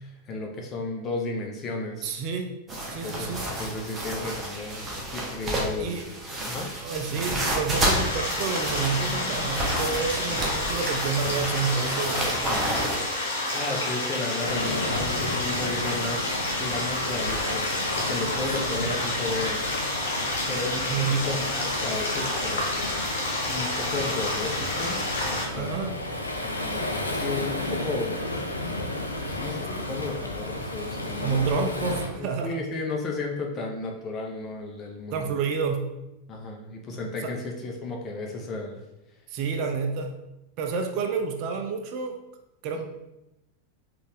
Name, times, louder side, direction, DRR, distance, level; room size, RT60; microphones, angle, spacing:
voice 1, 0.2-2.2 2.9-6.7 13.5-19.6 20.4-23.0 23.5-25.9 26.4-28.2 29.3-31.6 32.1-35.4 36.3-38.8 39.5-39.6 42.7-42.8, left 3 dB, 30° left, 1 dB, 0.7 m, -34 dB
voice 2, 2.0-2.5 2.9-3.4 5.8-6.0 6.8-12.5 18.7-18.8 20.9-21.3 25.5-25.9 31.2-32.6 35.1-35.9 37.2-37.3 39.3-40.2 40.6-42.2 42.6-42.8, right 5 dB, 40° right, 5 dB, 0.4 m, -29 dB
sound 1, 2.7-13.0, right 1 dB, 20° right, 0.9 m, -30 dB
sound 2, 7.7-25.5, left 2 dB, 65° left, 0.9 m, -30 dB
Waves surf, 14.4-32.1, left 1 dB, 80° left, 0.4 m, -33 dB
4.0 x 2.4 x 3.3 m, 0.94 s
figure-of-eight pair, 90°, 0 cm